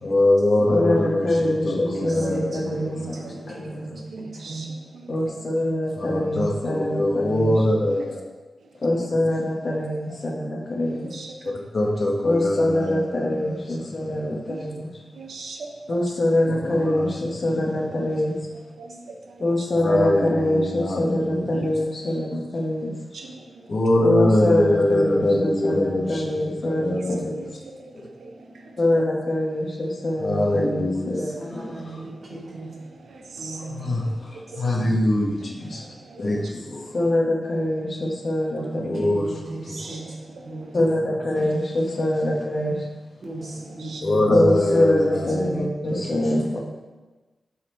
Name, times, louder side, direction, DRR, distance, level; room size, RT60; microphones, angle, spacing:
voice 1, 0.0-4.0 5.1-8.2 8.8-11.2 11.7-14.9 15.9-18.3 19.4-22.9 23.2-23.3 23.7-27.5 28.8-31.8 33.7-34.1 34.6-35.9 36.2-39.8 40.7-42.7 44.0-46.6, left 1 dB, 45° left, 0 dB, 1.1 m, -22 dB
voice 2, 1.9-3.9 4.2-4.6 31.4-32.7 33.4-33.7 38.6-40.0 40.5-40.7 43.2-43.4 43.7-44.1 46.0-46.3, right 2 dB, 45° right, -4 dB, 1.8 m, -36 dB
voice 3, 2.9-3.3 3.9-4.7 4.9-5.3 7.9-8.0 10.9-11.3 14.5-14.6 15.1-15.7 18.8-19.0 21.5-21.7 22.2-22.3 23.1-23.3 27.3-27.5 27.8-27.9 28.2-28.3 33.1-34.2 34.5-34.7 35.7-36.2 39.8-40.7 43.5-44.0, right 4 dB, 85° right, 2 dB, 0.7 m, -40 dB
7.8 x 4.1 x 4.3 m, 1.2 s
wide cardioid pair, 120°, 0 cm